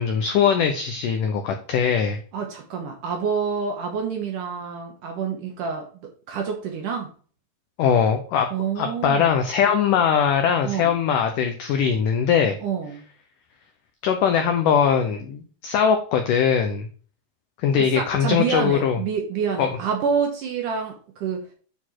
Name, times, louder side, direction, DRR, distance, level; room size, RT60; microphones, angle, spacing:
voice 1, 0.0-2.2 7.8-12.6 14.0-16.9 17.6-19.0 19.6-19.7, left 7 dB, 90° left, 1.8 m, -21 dB
voice 2, 2.3-7.1 8.5-9.3 10.6-11.0 12.6-13.1 17.8-21.5, right 6 dB, 70° right, 2.2 m, -28 dB
9.3 x 4.3 x 4.5 m
omnidirectional pair, 4.8 m